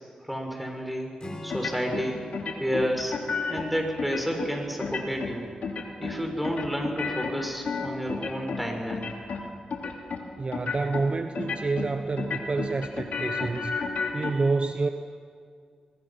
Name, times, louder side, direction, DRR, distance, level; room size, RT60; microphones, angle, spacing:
voice 1, 0.3-1.1 1.4-2.2 2.6-3.1 3.5-5.4 6.0-9.1, equal, ahead, 2 dB, 6.4 m, -30 dB
Acoustic guitar / Strum, 1.2-4.7, left 1 dB, 35° left, 4.4 m, -45 dB
sound 1, 1.5-2.1 2.3-3.7 4.0-4.5 4.8-5.3 5.6-6.2 6.4-8.6 8.9-9.4 9.7-10.2 10.5-11.0 11.4-11.9 12.2-14.3, left 5 dB, 70° left, 3.0 m, -31 dB
voice 2, 10.4-13.7 14.1-14.9, right 3 dB, 45° right, 7 dB, 1.1 m, -28 dB
23.5 x 21.5 x 6.0 m, 2.1 s
supercardioid pair, 40°, 2 cm